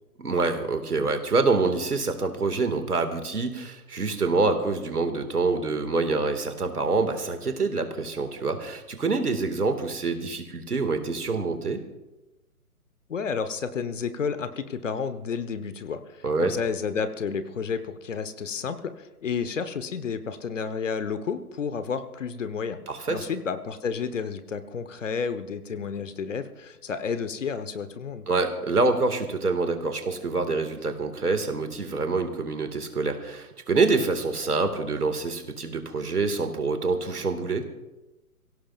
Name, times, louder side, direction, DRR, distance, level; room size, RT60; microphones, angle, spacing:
voice 1, 0.2-11.8 16.2-16.5 22.9-23.3 28.3-37.6, right 3 dB, 80° right, 7 dB, 2.1 m, -26 dB
voice 2, 13.1-22.8 23.1-28.2, left 6 dB, 55° left, 11 dB, 1.2 m, -31 dB
24.0 x 16.5 x 2.5 m, 1.0 s
figure-of-eight pair, 140°, 45 cm